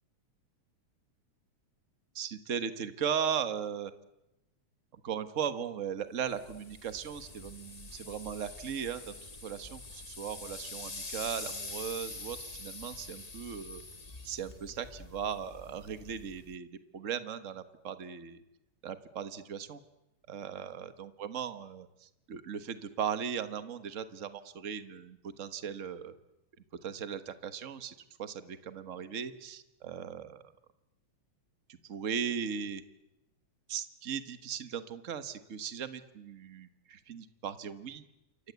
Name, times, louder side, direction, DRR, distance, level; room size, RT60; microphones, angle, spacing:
voice 1, 2.1-3.9 4.9-13.8 14.2-16.7 16.9-18.4 18.8-19.8 20.3-26.1 26.8-30.4 31.8-32.8 33.7-38.0, right 8 dB, 45° right, 10 dB, 1.0 m, -38 dB
sound 1, 6.3-16.6, left 3 dB, 25° left, 0.9 m, -45 dB
28.5 x 24.0 x 8.3 m, 0.91 s
omnidirectional pair, 3.4 m